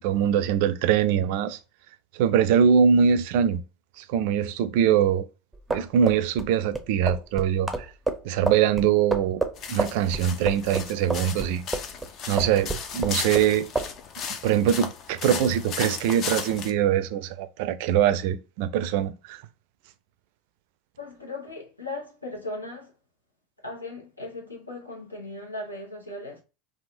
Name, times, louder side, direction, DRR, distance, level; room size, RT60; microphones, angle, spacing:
voice 1, 0.0-1.6 2.1-3.6 4.0-5.3 5.7-7.9 8.2-9.4 9.7-11.7 12.3-13.7 14.4-19.4, right 8 dB, 55° right, 0.4 m, -23 dB
sound 1, 5.5-12.1 12.4-13.5 13.8-13.9, right 3 dB, 5° right, 0.6 m, -29 dB
sound 2, 9.5-16.7, left 6 dB, 40° left, 0.5 m, -35 dB
voice 2, 21.0-22.9 23.6-26.4, left 2 dB, 85° left, 0.9 m, -37 dB
3.4 x 2.3 x 2.6 m
figure-of-eight pair, 80°, 0 cm